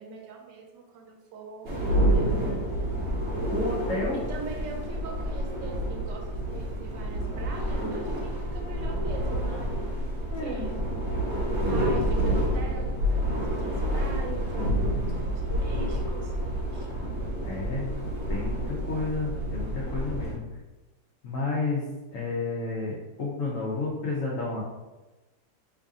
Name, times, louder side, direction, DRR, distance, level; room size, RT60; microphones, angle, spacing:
voice 1, 0.0-2.6 4.1-9.7 10.4-10.9 11.4-16.3 16.7-16.9, right 4 dB, 75° right, 1 dB, 1.2 m, -42 dB
sound 1, 1.6-20.3, equal, 50° right, 1.1 m, -28 dB
voice 2, 3.5-4.2 10.3-10.6 17.4-20.4 21.2-21.8 22.1-24.6, left 3 dB, 65° left, -5 dB, 0.8 m, -31 dB
3.2 x 2.5 x 3.6 m, 1.1 s
omnidirectional pair, 2.0 m